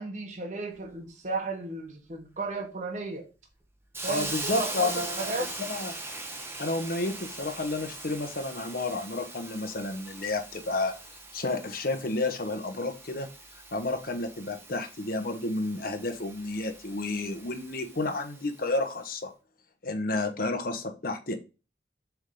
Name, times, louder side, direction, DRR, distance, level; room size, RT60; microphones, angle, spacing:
voice 1, 0.0-3.2 4.0-5.5, right 3 dB, 45° right, 1.2 m, -34 dB
Hiss, 3.9-18.7, right 2 dB, 15° right, 1.0 m, -41 dB
voice 2, 4.1-5.3 5.7-5.9 6.6-10.9 11.3-13.3 13.7-19.3 19.8-21.3, left 2 dB, 55° left, 1.1 m, -31 dB
7.2 x 3.6 x 3.8 m
head